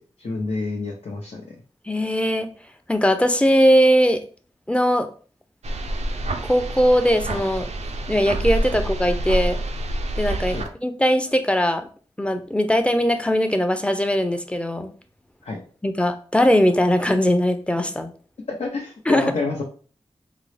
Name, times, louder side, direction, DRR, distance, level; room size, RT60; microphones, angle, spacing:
voice 1, 0.2-1.4 10.5-10.6 15.4-15.6 18.6-19.6, left 3 dB, 75° left, -2 dB, 0.6 m, -28 dB
voice 2, 1.9-2.5 2.9-4.2 4.7-5.1 6.5-7.7 8.1-9.6 10.2-11.9 12.2-14.9 15.8-18.1 19.1-19.3, equal, 10° left, 7 dB, 0.5 m, -20 dB
sound 1, 5.6-10.7, right 1 dB, 85° right, 0.4 m, -27 dB
3.7 x 2.0 x 3.2 m, 0.40 s
wide cardioid pair, 55°, 11 cm